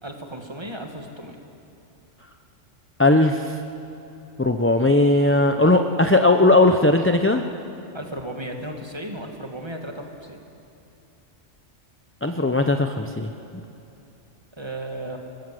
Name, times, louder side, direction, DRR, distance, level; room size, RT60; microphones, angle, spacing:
voice 1, 0.0-1.4 7.9-10.4 14.6-15.2, right 1 dB, 20° right, 2 dB, 2.3 m, -35 dB
voice 2, 3.0-3.6 4.4-7.4 12.2-13.3, left 2 dB, 15° left, 5 dB, 0.6 m, -18 dB
29.0 x 20.0 x 7.9 m, 2.7 s
omnidirectional pair, 1.3 m